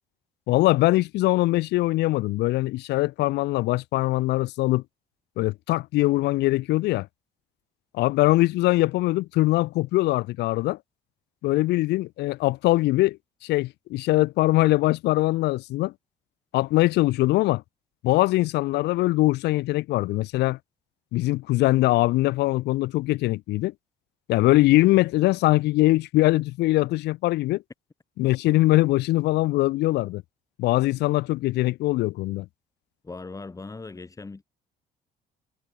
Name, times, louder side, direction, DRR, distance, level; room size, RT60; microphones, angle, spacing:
voice 1, 0.5-4.8 5.4-7.1 7.9-10.8 11.4-13.2 13.4-15.9 16.5-17.6 18.0-20.6 21.1-23.7 24.3-27.6 28.2-30.2 30.6-32.5, left 18 dB, 80° left, 1.3 m, -22 dB
voice 2, 33.0-34.4, left 3 dB, 20° left, 3.8 m, -39 dB
cardioid pair, 110°, 17 cm